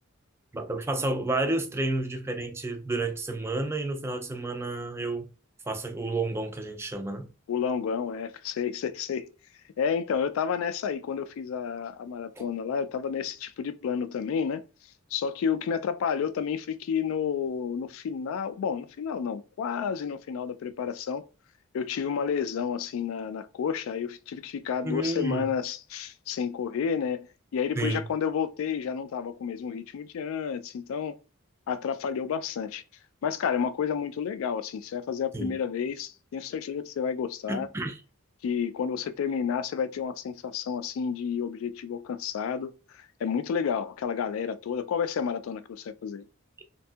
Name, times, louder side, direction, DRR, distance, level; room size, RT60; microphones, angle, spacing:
voice 1, 0.5-5.3 5.7-7.3 12.4-12.5 24.8-25.5 27.8-28.1 35.3-35.6 37.5-38.0, right 2 dB, 10° right, 0.3 m, -30 dB
voice 2, 7.5-9.3 9.8-14.6 15.1-21.2 21.7-27.3 27.5-31.2 31.7-32.8 33.2-37.7 38.4-46.3, left 7 dB, 75° left, 0.3 m, -30 dB
2.6 x 2.5 x 2.3 m
head